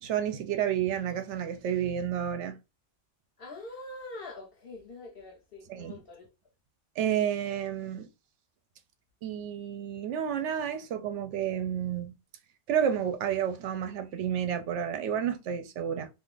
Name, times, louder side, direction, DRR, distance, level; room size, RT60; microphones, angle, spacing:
voice 1, 0.0-2.6 5.7-6.0 7.0-8.1 9.2-12.1 12.7-16.1, right 9 dB, 80° right, 0.9 m, -30 dB
voice 2, 3.4-6.3, left 2 dB, 60° left, 0.8 m, -44 dB
2.5 x 2.4 x 3.6 m
omnidirectional pair, 1.2 m